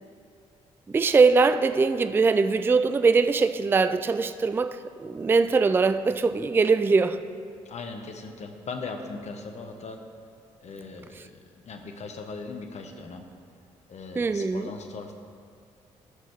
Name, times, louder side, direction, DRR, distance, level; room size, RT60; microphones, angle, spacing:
voice 1, 0.9-7.2 14.2-14.7, right 4 dB, 15° right, 11 dB, 0.3 m, -22 dB
voice 2, 7.6-10.0 10.6-13.3 13.9-15.1, left 4 dB, 40° left, 5 dB, 1.0 m, -39 dB
13.5 x 6.3 x 3.4 m, 2.3 s
figure-of-eight pair, 40°, 17 cm